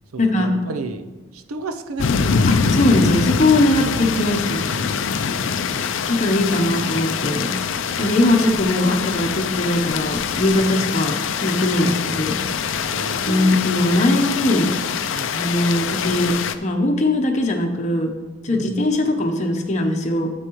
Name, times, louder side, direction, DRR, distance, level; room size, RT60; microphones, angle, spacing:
voice 1, 0.1-1.1 1.3-2.4 3.8-4.6 5.2-5.6 6.6-7.4 7.9-8.1 10.7-10.9 11.8-12.6 12.9-13.5 15.1-15.4 18.5-18.7, right 3 dB, 90° right, 8 dB, 0.6 m, -34 dB
sound 1, 2.0-16.5, left 6 dB, 65° left, 0.4 m, -24 dB
voice 2, 2.5-4.7 6.1-7.6 8.0-12.4 13.2-14.7 15.3-18.1 18.4-20.3, left 1 dB, 35° left, 1 dB, 0.8 m, -20 dB
9.8 x 7.8 x 3.0 m, 1.2 s
head